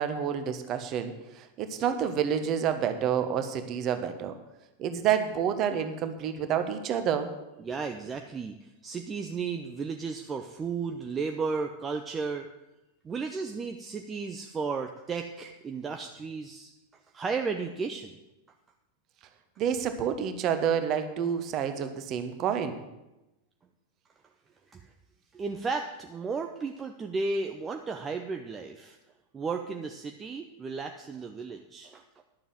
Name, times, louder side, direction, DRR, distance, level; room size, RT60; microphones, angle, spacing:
voice 1, 0.0-4.4 4.8-7.3 19.6-22.8, right 8 dB, 35° right, 8 dB, 1.3 m, -29 dB
voice 2, 7.6-12.5 13.0-16.7 17.1-18.2 24.7-24.9 25.3-29.0 29.3-32.2, right 4 dB, 20° right, 4 dB, 0.8 m, -34 dB
11.0 x 7.1 x 9.0 m, 0.99 s
figure-of-eight pair, 90°, 0 cm